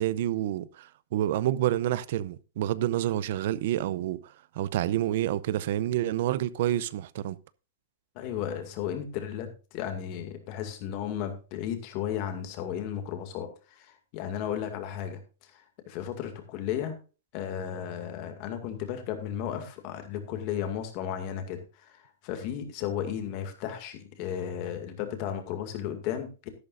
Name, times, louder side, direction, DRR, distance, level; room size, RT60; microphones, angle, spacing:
voice 1, 0.0-7.4, right 12 dB, 50° right, 0.6 m, -28 dB
voice 2, 8.2-17.0 17.3-26.5, left 9 dB, 35° left, 2.1 m, -34 dB
12.5 x 11.5 x 2.5 m
supercardioid pair, 170°, 0 cm